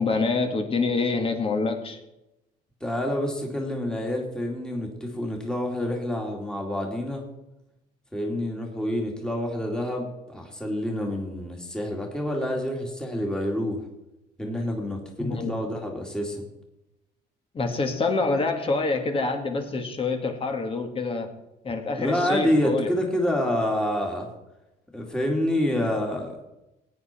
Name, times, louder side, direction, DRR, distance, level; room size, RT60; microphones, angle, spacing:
voice 1, 0.0-2.0 15.2-15.6 17.5-21.3 21.6-22.9, left 3 dB, 35° left, 5 dB, 2.2 m, -26 dB
voice 2, 2.8-7.2 8.1-13.8 14.4-16.4 22.0-24.3 24.9-26.4, left 1 dB, 5° left, 0 dB, 2.6 m, -27 dB
16.5 x 9.7 x 4.5 m, 0.91 s
cardioid pair, 110°, 17 cm